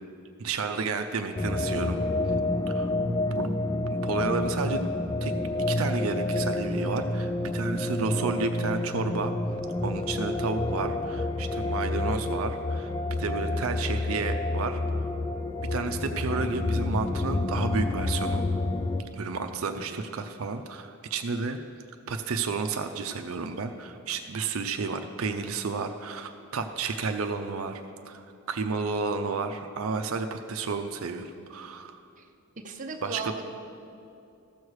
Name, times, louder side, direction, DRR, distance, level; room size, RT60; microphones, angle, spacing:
voice 1, 0.4-2.0 2.7-2.9 3.3-3.5 4.0-4.8 5.2-5.3 5.7-9.3 9.8-12.9 13.2-15.1 15.7-18.5 19.2-21.6 22.1-27.8 28.1-32.0 33.0-33.3, right 4 dB, 75° right, 6 dB, 0.5 m, -31 dB
sound 1, 1.3-19.0, left 2 dB, 20° left, 0.4 m, -29 dB
voice 2, 13.4-13.7 19.8-20.1 32.2-32.3 32.6-33.4, right 4 dB, 35° right, 3 dB, 0.7 m, -39 dB
14.5 x 6.4 x 4.7 m, 2.5 s
head